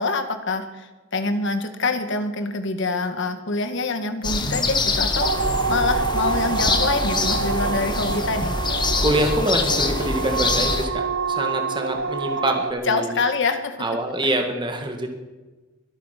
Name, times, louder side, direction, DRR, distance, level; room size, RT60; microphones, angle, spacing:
voice 1, 0.0-8.5 12.9-13.9, left 3 dB, 65° left, 8 dB, 1.6 m, -25 dB
sound 1, 4.2-10.9, left 3 dB, 20° left, 1.3 m, -25 dB
sound 2, 4.3-4.9 5.2-5.8 6.2-6.8 7.1-8.5 8.9-9.5, right 1 dB, 85° right, 2.7 m, -38 dB
sound 3, 5.2-12.7, right 5 dB, 70° right, 0.9 m, -27 dB
voice 2, 9.0-13.2 13.8-15.1, right 1 dB, 25° right, 4 dB, 1.8 m, -25 dB
22.5 x 8.6 x 5.9 m, 1.2 s
head